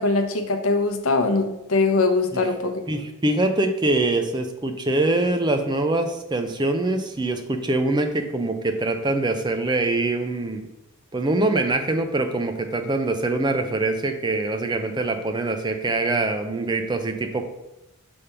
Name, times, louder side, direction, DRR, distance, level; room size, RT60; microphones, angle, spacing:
voice 1, 0.0-2.8, left 3 dB, 75° left, 6 dB, 0.8 m, -22 dB
voice 2, 2.9-10.7 11.1-17.4, right 2 dB, 20° right, 6 dB, 0.4 m, -24 dB
5.4 x 3.4 x 5.7 m, 0.92 s
head